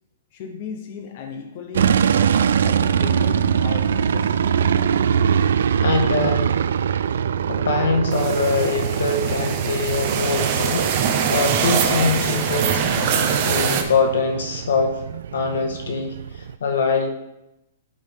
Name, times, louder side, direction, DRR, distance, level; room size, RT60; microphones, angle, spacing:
voice 1, 0.3-4.3, left 5 dB, 35° left, 3 dB, 0.9 m, -35 dB
sound 1, 1.7-16.5, right 8 dB, 70° right, 0.3 m, -23 dB
voice 2, 5.8-6.6 7.5-15.0 15.3-17.1, left 4 dB, 85° left, 4 dB, 1.6 m, -23 dB
sound 2, 8.1-13.8, right 7 dB, 30° right, 0.8 m, -23 dB
11.5 x 5.2 x 3.7 m, 0.88 s
hypercardioid pair, 175°, 0 cm